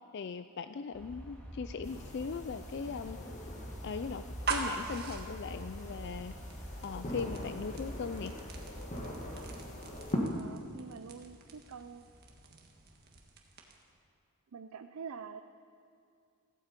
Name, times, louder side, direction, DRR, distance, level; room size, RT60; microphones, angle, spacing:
voice 1, 0.1-3.2 3.8-6.3 6.8-8.3, left 5 dB, 50° left, 10 dB, 0.4 m, -39 dB
sound 1, 0.9-9.6, equal, 10° left, 1.9 m, -46 dB
sound 2, 1.8-10.2, left 1 dB, 35° left, 1.7 m, -44 dB
sound 3, 4.4-14.0, right 4 dB, 45° right, 1.6 m, -43 dB
voice 2, 10.3-12.1 14.5-15.4, right 6 dB, 70° right, 9 dB, 0.5 m, -46 dB
16.0 x 15.0 x 5.2 m, 2.5 s
head